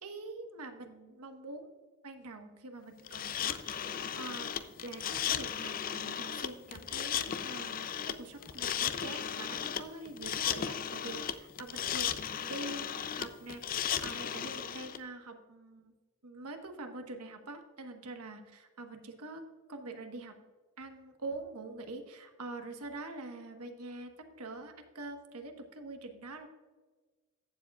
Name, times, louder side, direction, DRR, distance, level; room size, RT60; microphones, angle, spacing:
voice 1, 0.0-1.7 2.0-15.9 16.2-19.4 19.7-20.4 20.8-26.5, right 2 dB, 85° right, 5 dB, 1.2 m, -45 dB
sound 1, 3.1-15.0, left 9 dB, 40° left, 0.5 m, -35 dB
15.5 x 7.2 x 2.4 m, 1.3 s
head